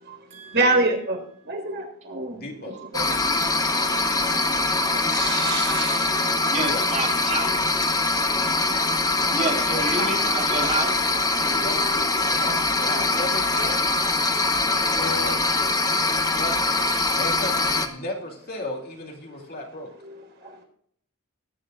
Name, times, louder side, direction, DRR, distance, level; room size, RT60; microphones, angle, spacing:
voice 1, 0.0-3.1 4.9-6.2 8.1-8.2 11.4-12.3 12.9-13.0 15.6-15.7 16.1-16.2 20.1-20.5, right 2 dB, 55° right, 2 dB, 4.3 m, -28 dB
voice 2, 2.3-2.8 6.5-6.8 9.7-10.2 11.5-11.8 12.2-13.9 15.0-15.3 16.4-16.7 17.1-19.9, left 2 dB, 45° left, 0 dB, 2.6 m, -34 dB
sound 1, 2.9-17.9, left 2 dB, 15° left, 1.0 m, -23 dB
voice 3, 6.5-7.5 9.3-11.0 16.9-17.0, right 3 dB, 35° right, -1 dB, 3.9 m, -29 dB
21.5 x 10.5 x 2.4 m, 0.66 s
head